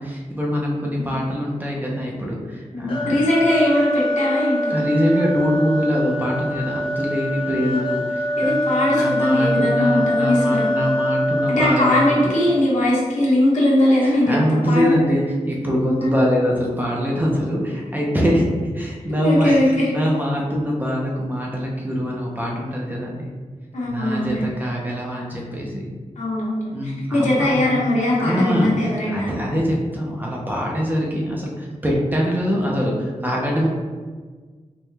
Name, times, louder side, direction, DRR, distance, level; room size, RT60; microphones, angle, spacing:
voice 1, 0.0-3.2 4.7-8.6 8.9-12.2 14.0-23.3 23.9-25.9 26.7-27.8 28.2-33.7, equal, 15° right, -3 dB, 0.6 m, -23 dB
voice 2, 2.7-4.7 7.5-7.8 8.4-10.7 11.5-14.9 16.0-16.1 19.2-19.9 23.7-24.4 26.2-29.4, left 1 dB, 70° left, -6 dB, 1.2 m, -20 dB
sound 1, 2.9-12.8, left 1 dB, 45° left, 0.6 m, -24 dB
4.6 x 2.2 x 3.3 m, 1.5 s
wide cardioid pair, 135°, 13 cm